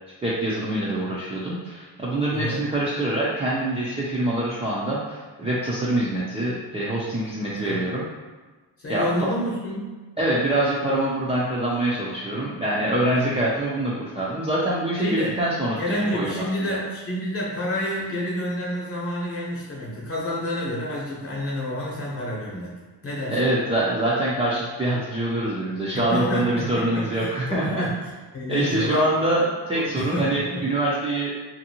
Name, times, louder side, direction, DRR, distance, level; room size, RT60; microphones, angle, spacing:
voice 1, 0.2-8.1 8.9-9.1 10.2-16.8 23.3-27.8 28.5-31.3, right 1 dB, 15° right, -8 dB, 0.3 m, -25 dB
voice 2, 2.3-2.6 7.6-7.8 8.8-9.9 13.1-13.4 15.0-15.4 15.8-22.7 23.0-23.5 26.1-27.9 28.3-29.1 29.7-30.7, equal, 30° left, -5 dB, 0.8 m, -29 dB
2.6 x 2.5 x 2.8 m, 1.3 s
cardioid pair, 135°, 43 cm